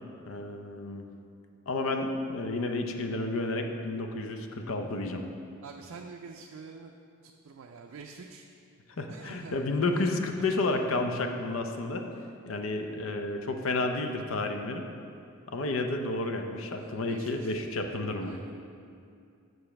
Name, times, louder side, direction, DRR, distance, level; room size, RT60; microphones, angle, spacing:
voice 1, 0.3-1.0 1.7-5.2 9.0-12.0 12.5-14.8 15.5-18.3, left 2 dB, 70° left, 5 dB, 0.6 m, -31 dB
voice 2, 5.6-6.9 7.2-8.5 9.1-9.6 10.4-10.7 16.7-17.7 18.2-18.5, right 4 dB, 80° right, 2 dB, 0.4 m, -47 dB
6.1 x 5.1 x 5.7 m, 2.4 s
head